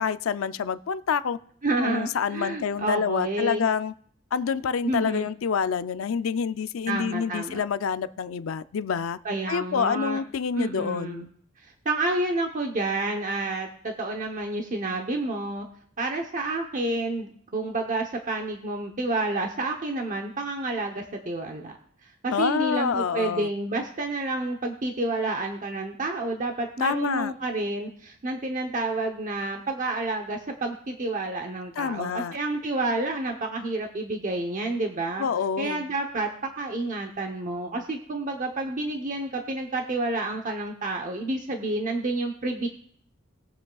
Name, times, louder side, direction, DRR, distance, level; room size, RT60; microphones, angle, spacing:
voice 1, 0.0-1.4 1.8-3.9 4.3-9.2 9.5-11.3 22.3-23.5 26.8-27.3 31.8-32.4 35.2-35.9, left 6 dB, 90° left, 0.4 m, -27 dB
voice 2, 1.6-3.7 4.8-5.3 6.9-7.6 9.2-10.2 10.5-11.3 11.6-15.7 16.0-21.8 22.2-35.2 35.6-42.7, right 2 dB, 40° right, 0.9 m, -29 dB
20.5 x 7.3 x 2.3 m
head